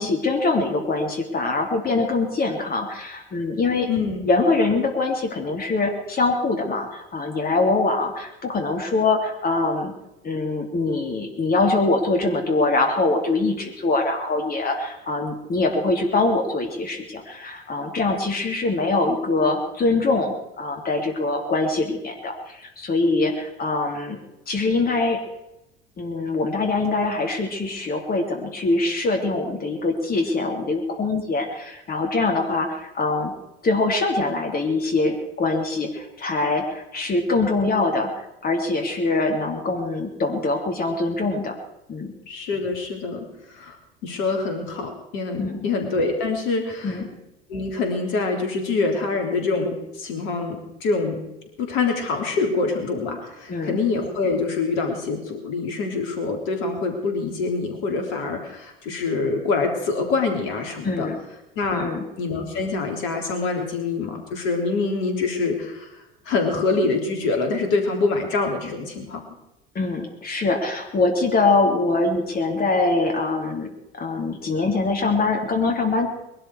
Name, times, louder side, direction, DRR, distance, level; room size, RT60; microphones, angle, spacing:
voice 1, 0.0-3.9 4.2-9.9 10.2-24.2 24.5-25.3 26.0-33.3 33.6-41.5 41.9-42.1 45.4-45.6 46.8-47.1 53.5-53.8 60.8-61.2 61.7-62.0 69.7-76.1, left 3 dB, 30° left, 3 dB, 3.0 m, -23 dB
voice 2, 3.9-4.2 42.3-43.8 44.0-47.0 47.5-51.2 51.6-61.1 61.6-61.9 62.2-65.9 66.3-69.2, left 3 dB, 55° left, 3 dB, 3.6 m, -25 dB
21.5 x 12.5 x 4.8 m, 0.89 s
figure-of-eight pair, 65°, 30 cm